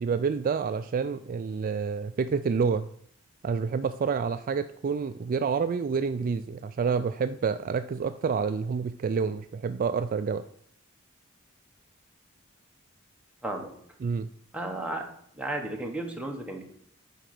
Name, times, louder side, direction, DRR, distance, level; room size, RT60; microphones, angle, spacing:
voice 1, 0.0-2.9 3.4-10.4 14.0-14.3, right 5 dB, 40° right, 10 dB, 0.3 m, -28 dB
voice 2, 14.5-15.0 15.4-16.6, right 1 dB, 5° right, 1 dB, 1.3 m, -33 dB
8.1 x 5.1 x 6.0 m, 0.67 s
head